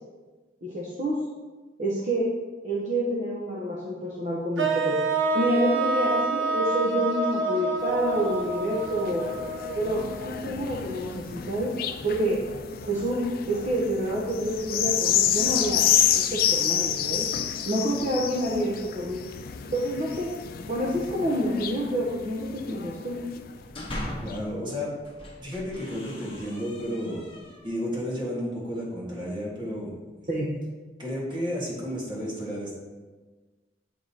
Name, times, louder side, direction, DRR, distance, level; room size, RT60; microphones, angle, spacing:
voice 1, 0.6-1.2 1.8-2.3 2.6-5.0 5.3-9.2 9.7-11.7 12.0-12.4 12.9-15.9 16.1-17.3 17.7-19.2 19.7-20.3 20.6-23.2 30.3-30.5, right 1 dB, 40° right, -5 dB, 0.8 m, -28 dB
sound 1, 4.6-10.6, right 3 dB, 85° right, 0.7 m, -28 dB
sound 2, 7.8-23.6 24.3-24.4, left 9 dB, 55° left, 0.4 m, -29 dB
sound 3, 23.5-24.5 25.0-27.8, left 1 dB, 30° left, 1.1 m, -39 dB
voice 2, 24.2-24.9 25.4-27.2 27.6-29.9 31.0-32.7, equal, 25° right, -4 dB, 1.6 m, -32 dB
7.7 x 5.0 x 2.8 m, 1.3 s
head